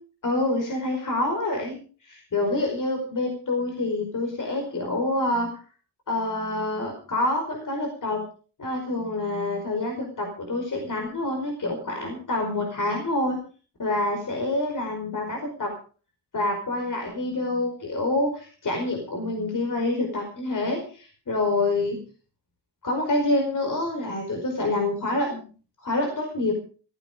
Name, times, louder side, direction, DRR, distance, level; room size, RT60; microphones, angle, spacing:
voice 1, 0.2-5.5 6.1-8.2 8.6-13.4 13.8-15.7 16.3-22.0 22.8-25.4 25.8-26.5, left 2 dB, 50° left, 2 dB, 5.2 m, -27 dB
16.0 x 15.0 x 5.2 m, 0.40 s
cardioid pair, 105°, 41 cm